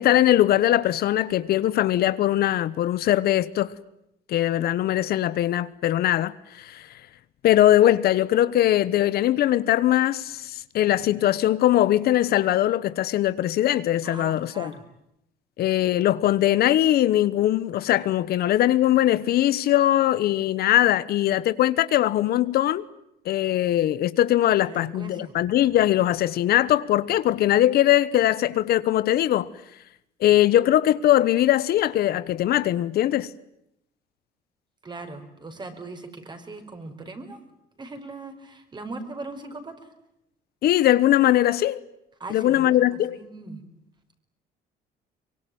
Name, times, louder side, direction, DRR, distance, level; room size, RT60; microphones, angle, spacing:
voice 1, 0.0-3.7 4.3-6.9 7.4-14.7 15.6-22.8 23.2-29.5 30.2-33.3 40.6-41.8 42.3-43.2, left 13 dB, 65° left, 1.1 m, -21 dB
voice 2, 14.0-14.8 24.6-25.3 34.8-37.4 37.8-39.7 42.2-43.6, right 3 dB, 25° right, 5.2 m, -39 dB
24.5 x 23.0 x 9.3 m
cardioid pair, 110°, 17 cm